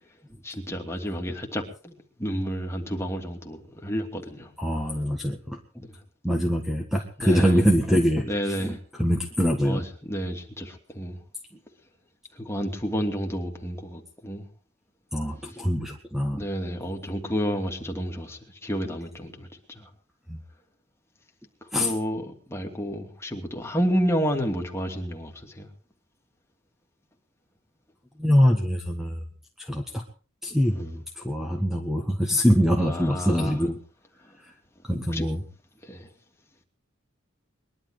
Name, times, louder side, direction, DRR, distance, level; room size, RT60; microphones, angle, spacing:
voice 1, 0.4-4.5 5.8-6.0 7.2-7.6 8.3-8.8 9.6-11.2 12.3-14.4 16.3-19.5 19.7-19.9 21.8-25.7 30.7-30.8 32.8-33.6 35.1-35.3 35.8-36.1, equal, 15° left, 2.7 m, -30 dB
voice 2, 4.6-5.8 6.2-8.3 8.6-9.8 15.1-16.4 20.3-20.4 21.7-21.9 28.2-29.2 29.6-30.0 30.4-33.8 34.4-34.5 34.8-35.4, equal, ahead, 1.6 m, -24 dB
21.5 x 11.5 x 4.9 m
head